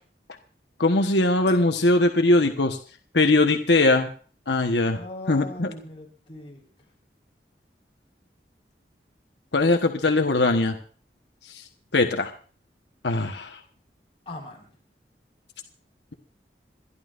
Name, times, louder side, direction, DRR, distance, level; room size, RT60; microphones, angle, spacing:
voice 1, 0.8-2.8 3.1-4.1 4.5-5.0 5.3-5.7 9.5-10.8 11.5-11.6 11.9-12.3 13.0-13.6, left 2 dB, 85° left, 5 dB, 1.2 m, -21 dB
voice 2, 4.9-6.9 14.3-14.7, left 1 dB, 30° left, -2 dB, 4.4 m, -40 dB
27.5 x 11.5 x 2.5 m, 0.42 s
head